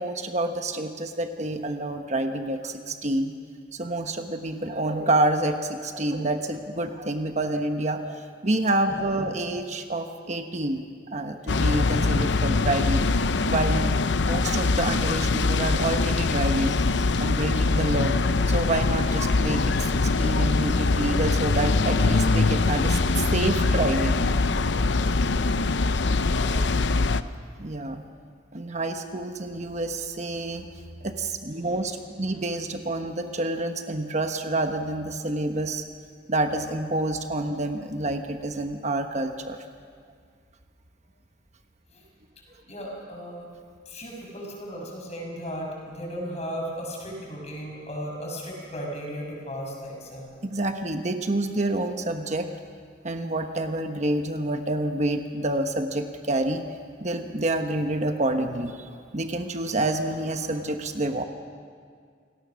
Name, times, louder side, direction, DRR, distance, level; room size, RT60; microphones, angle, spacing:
voice 1, 0.0-3.3 3.7-13.0 13.5-16.8 17.2-18.2 18.5-24.2 27.6-28.0 28.5-30.7 31.0-35.8 36.3-39.6 50.4-52.5 53.0-56.6 57.0-61.2, right 2 dB, 40° right, 6 dB, 1.1 m, -28 dB
voice 2, 8.9-9.3 26.1-27.0 31.6-31.8 41.9-42.0 42.7-43.5 43.9-50.4, equal, 40° left, 0 dB, 6.0 m, -36 dB
sound 1, 11.5-27.2, left 3 dB, 75° left, 0.7 m, -23 dB
28.5 x 18.5 x 6.3 m, 2.1 s
head